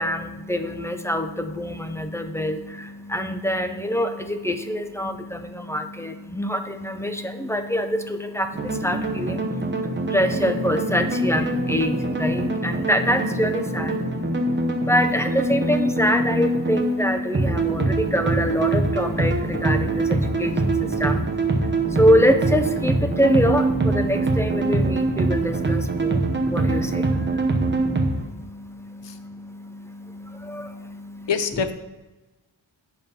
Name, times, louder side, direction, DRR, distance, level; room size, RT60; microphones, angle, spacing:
voice 1, 0.0-31.3, equal, 5° left, 7 dB, 0.4 m, -25 dB
sound 1, 8.5-28.3, right 2 dB, 25° right, 0.8 m, -24 dB
voice 2, 31.3-31.7, left 6 dB, 65° left, 10 dB, 0.7 m, -24 dB
9.0 x 5.4 x 4.1 m, 1.1 s
wide cardioid pair, 150°, 46 cm